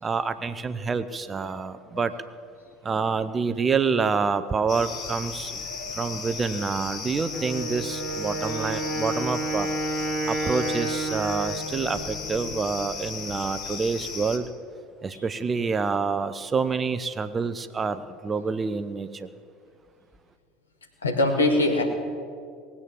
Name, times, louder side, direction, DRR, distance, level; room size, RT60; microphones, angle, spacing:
voice 1, 0.0-2.1 2.8-5.7 5.9-9.7 10.3-14.5 15.0-19.3, right 5 dB, 25° right, 12 dB, 0.8 m, -27 dB
sound 1, 4.7-14.4, left 5 dB, 45° left, 1.8 m, -36 dB
voice 2, 5.6-6.2 15.1-15.2 21.0-21.8, left 2 dB, 80° left, 3 dB, 2.0 m, -25 dB
Wind instrument woodwind instrument, 7.3-13.0, right 2 dB, 25° left, 5.1 m, -31 dB
19.5 x 8.6 x 7.6 m, 2.2 s
figure-of-eight pair, 70°, 0 cm